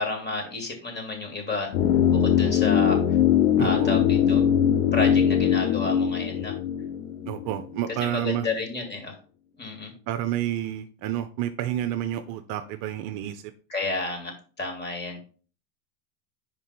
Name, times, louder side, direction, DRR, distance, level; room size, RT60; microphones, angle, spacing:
voice 1, 0.0-1.8 2.1-3.0 3.6-4.4 4.9-6.6 8.0-9.2 9.6-9.9 13.7-15.2, left 3 dB, 20° left, 2.7 m, -31 dB
sound 1, 1.7-7.8 8.0-8.1, left 9 dB, 70° left, 1.0 m, -21 dB
voice 2, 3.6-4.0 7.3-8.5 10.1-13.5, right 12 dB, 45° right, 0.7 m, -29 dB
5.1 x 5.1 x 5.8 m
hypercardioid pair, 100°, 48 cm